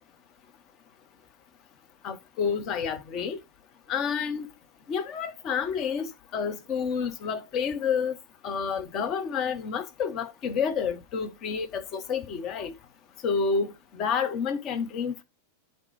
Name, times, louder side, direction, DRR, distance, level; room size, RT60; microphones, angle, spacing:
voice 1, 2.0-3.4 3.9-4.5 4.9-8.2 8.4-12.7 13.2-15.2, left 6 dB, 35° left, 0.9 m, -29 dB
10.5 x 4.2 x 3.2 m
figure-of-eight pair, 90°, 0 cm